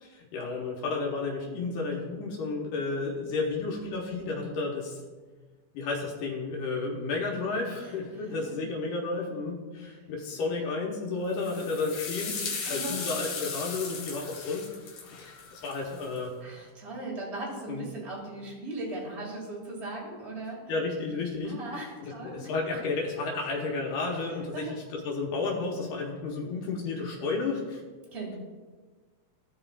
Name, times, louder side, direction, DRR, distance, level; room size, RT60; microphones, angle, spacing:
voice 1, 0.3-5.0 5.7-12.4 12.7-14.7 15.1-16.3 17.7-17.8 20.7-21.6 22.2-27.8, left 3 dB, 90° left, -1 dB, 2.6 m, -32 dB
voice 2, 7.8-8.8 12.7-13.0 16.4-20.6 21.4-22.5 24.5-24.8 28.1-28.4, right 2 dB, 25° right, -3 dB, 2.0 m, -38 dB
sound 1, 11.3-16.2, left 5 dB, 65° left, 2.3 m, -37 dB
15.0 x 5.5 x 2.4 m, 1.4 s
omnidirectional pair, 3.6 m